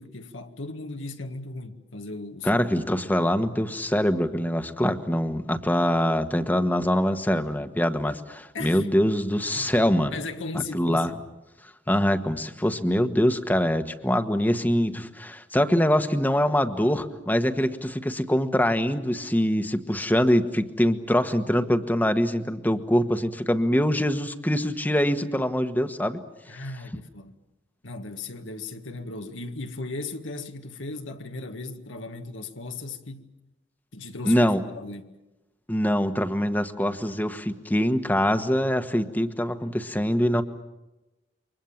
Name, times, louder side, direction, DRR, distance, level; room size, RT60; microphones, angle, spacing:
voice 1, 0.0-2.8 8.5-8.9 9.5-9.7 10.1-11.2 26.5-27.3 27.8-33.3 33.9-35.1, left 3 dB, 80° left, 1.9 m, -37 dB
voice 2, 2.4-10.2 10.5-11.1 11.9-26.2 34.2-34.6 35.7-40.4, equal, 10° left, 1.3 m, -24 dB
29.0 x 25.0 x 7.3 m
head